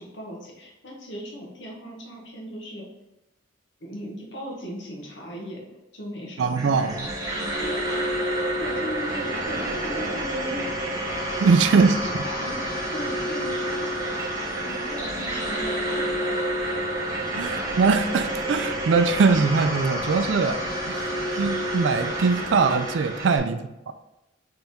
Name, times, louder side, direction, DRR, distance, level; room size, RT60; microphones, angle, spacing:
voice 1, 0.0-2.8 3.8-5.7 5.9-7.1 7.4-7.7 8.2-10.9 12.0-13.9 14.3-16.4 23.3-23.4, equal, 65° left, -1 dB, 1.1 m, -37 dB
sound 1, 6.4-23.4, right 1 dB, 20° right, 1.0 m, -29 dB
voice 2, 6.4-7.1 11.4-12.1 17.3-20.6 20.9-23.6 23.9-24.0, right 4 dB, 65° right, 10 dB, 0.4 m, -22 dB
4.0 x 3.4 x 3.5 m, 0.96 s
head